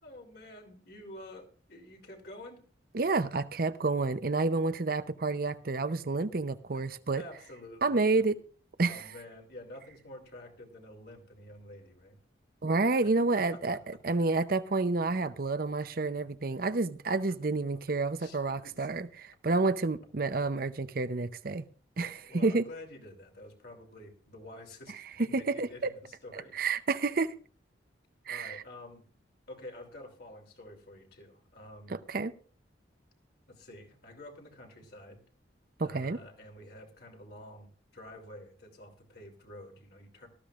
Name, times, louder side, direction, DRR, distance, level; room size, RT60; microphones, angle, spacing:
voice 1, 0.0-2.6 6.7-6.8 7.2-8.2 8.8-12.2 13.3-13.8 18.2-18.9 21.9-26.5 28.3-29.1 29.5-31.9 33.5-35.2 35.8-40.3, left 1 dB, 55° left, 3.0 m, -49 dB
voice 2, 2.9-7.2 7.8-8.4 8.8-9.0 12.6-13.8 14.0-21.6 22.0-22.6 25.3-25.9 26.3-27.3 28.3-28.6 31.9-32.3 35.8-36.2, right 3 dB, 50° right, 0.7 m, -29 dB
18.5 x 13.5 x 2.4 m
head